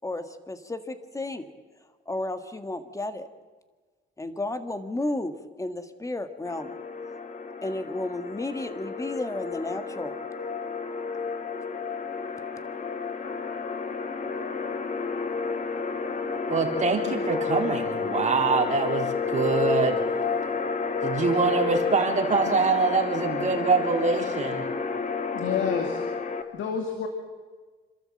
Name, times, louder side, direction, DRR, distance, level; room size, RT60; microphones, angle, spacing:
voice 1, 0.0-1.5 2.1-3.3 4.2-6.7 7.6-10.2, left 2 dB, 15° left, 9 dB, 1.8 m, -32 dB
sound 1, 6.4-26.4, left 5 dB, 40° left, 1.8 m, -30 dB
voice 2, 16.5-20.0 21.0-24.6, right 4 dB, 40° right, 1 dB, 3.8 m, -24 dB
voice 3, 25.3-26.0 26.5-27.1, left 7 dB, 75° left, 4 dB, 2.3 m, -29 dB
27.0 x 13.0 x 7.8 m, 1.4 s
cardioid pair, 90°, 20 cm